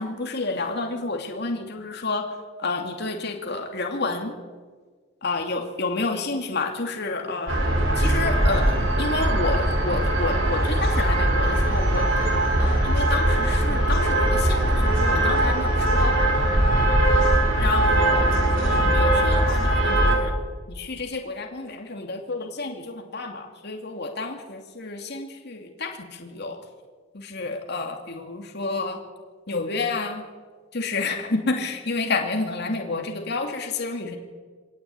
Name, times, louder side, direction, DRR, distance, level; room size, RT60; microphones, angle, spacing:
voice 1, 0.0-2.3 2.6-4.4 5.2-7.6 8.0-12.1 12.6-16.2 17.6-20.3 20.7-26.6 27.1-29.0 29.5-30.2 30.7-34.2, left 3 dB, 55° left, 2 dB, 2.7 m, -30 dB
sound 1, 7.5-20.2, right 1 dB, 90° right, 5.3 m, -21 dB
24.5 x 18.0 x 8.6 m, 1.5 s
head